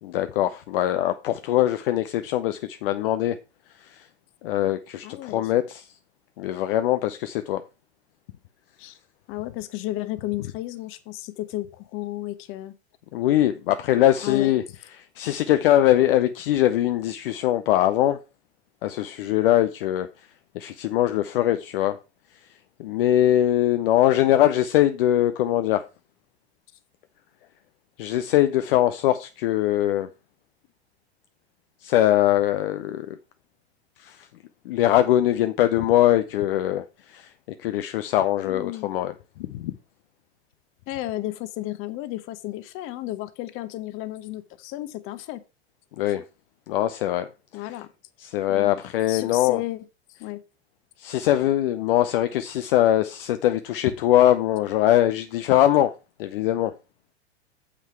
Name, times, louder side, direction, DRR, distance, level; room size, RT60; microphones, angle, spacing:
voice 1, 0.0-3.4 3.8-4.1 4.4-5.9 6.4-7.6 13.1-14.6 15.2-18.2 18.8-20.1 20.5-22.0 22.8-25.8 28.0-30.1 31.8-33.2 34.0-34.3 34.7-37.3 37.6-39.1 39.5-39.7 46.0-46.2 46.7-47.3 48.2-49.6 51.0-55.9 56.2-56.7, left 13 dB, 55° left, 0.7 m, -22 dB
voice 2, 5.0-5.5 8.8-9.0 9.3-12.7 14.2-14.5 38.4-38.9 40.9-45.4 47.5-47.9 48.5-48.8 49.1-49.8 50.2-50.4, left 15 dB, 40° left, 1.1 m, -33 dB
8.6 x 7.4 x 4.5 m
figure-of-eight pair, 90°, 34 cm